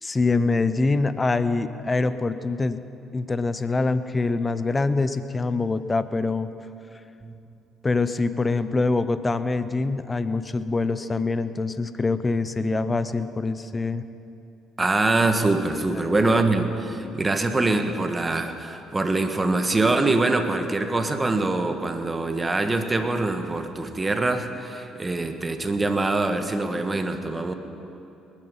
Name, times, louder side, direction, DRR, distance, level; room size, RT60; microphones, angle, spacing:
voice 1, 0.0-2.8 3.1-6.5 7.8-14.0 16.0-16.3, left 3 dB, 25° left, 13 dB, 0.8 m, -24 dB
voice 2, 14.8-27.5, right 2 dB, 25° right, 7 dB, 1.5 m, -24 dB
20.0 x 10.0 x 5.6 m, 2.8 s
hypercardioid pair, 55°, 0 cm